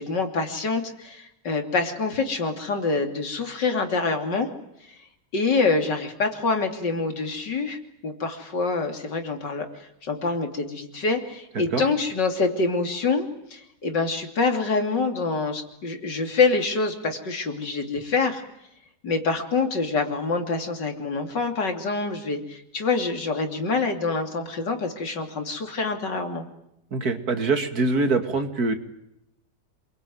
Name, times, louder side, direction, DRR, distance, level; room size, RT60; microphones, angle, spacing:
voice 1, 0.0-4.5 5.3-18.4 19.0-26.5, left 4 dB, 85° left, 5 dB, 3.7 m, -26 dB
voice 2, 26.9-28.7, right 3 dB, 60° right, 7 dB, 2.7 m, -23 dB
28.0 x 22.5 x 9.5 m, 0.81 s
omnidirectional pair, 1.8 m